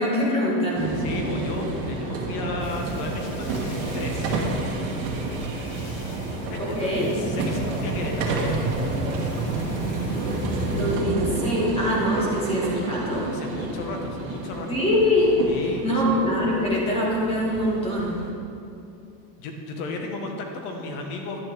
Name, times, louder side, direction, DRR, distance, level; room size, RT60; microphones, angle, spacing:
voice 1, 0.0-1.0 6.6-7.1 10.7-13.3 14.7-15.4 15.8-18.2, left 1 dB, 10° left, -5 dB, 1.9 m, -24 dB
sound 1, 0.7-18.3, right 2 dB, 50° right, 1.7 m, -29 dB
voice 2, 1.0-4.4 6.0-8.4 13.2-14.8 15.5-16.2 19.4-21.4, left 2 dB, 60° left, 2 dB, 1.7 m, -34 dB
sound 2, 2.6-11.0, left 3 dB, 85° left, 1.8 m, -44 dB
11.0 x 9.5 x 3.6 m, 2.7 s
supercardioid pair, 160°, 50 cm